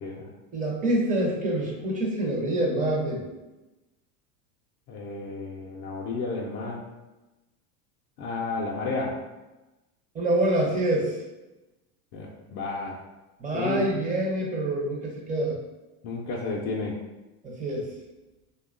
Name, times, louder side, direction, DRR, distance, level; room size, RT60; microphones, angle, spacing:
voice 1, 0.0-0.3 4.9-6.8 8.2-9.2 12.1-12.9 13.5-13.9 16.0-16.9, left 3 dB, 40° left, -3 dB, 0.4 m, -31 dB
voice 2, 0.5-3.3 10.1-11.2 13.4-15.5 17.6-17.9, right 1 dB, 20° right, -2 dB, 0.6 m, -26 dB
2.8 x 2.2 x 2.4 m, 1.1 s
supercardioid pair, 115°, 45 cm